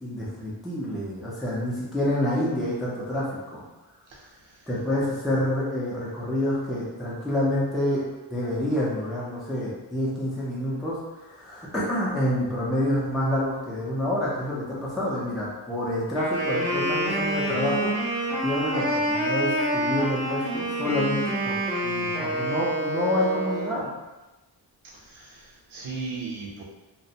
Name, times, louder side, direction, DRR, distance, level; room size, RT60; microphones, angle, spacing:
voice 1, 0.0-3.6 4.7-21.6 21.8-23.9, left 1 dB, ahead, -7 dB, 0.5 m, -28 dB
voice 2, 4.1-4.7 24.9-26.6, right 4 dB, 75° right, -2 dB, 0.7 m, -37 dB
Wind instrument woodwind instrument, 16.1-23.8, right 1 dB, 15° left, 0.9 m, -27 dB
2.4 x 2.0 x 2.7 m, 1.1 s
wide cardioid pair, 100°, 48 cm